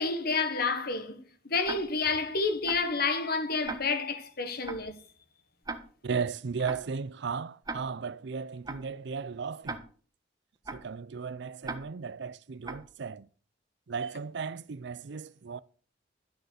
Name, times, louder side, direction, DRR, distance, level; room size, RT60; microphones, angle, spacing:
voice 1, 0.0-5.0, left 4 dB, 55° left, 1.4 m, -29 dB
Tick-tock, 1.6-1.8 2.6-2.8 3.6-3.8 4.6-4.8 5.6-5.8 6.6-6.8 7.6-7.8 8.6-8.8 9.6-9.8 10.6-10.8 11.6-11.8 12.6-12.8, right 3 dB, 20° right, 1.3 m, -36 dB
voice 2, 6.0-9.8 10.7-13.3 13.9-15.6, right 5 dB, 65° right, 0.5 m, -35 dB
11.5 x 6.9 x 6.5 m
head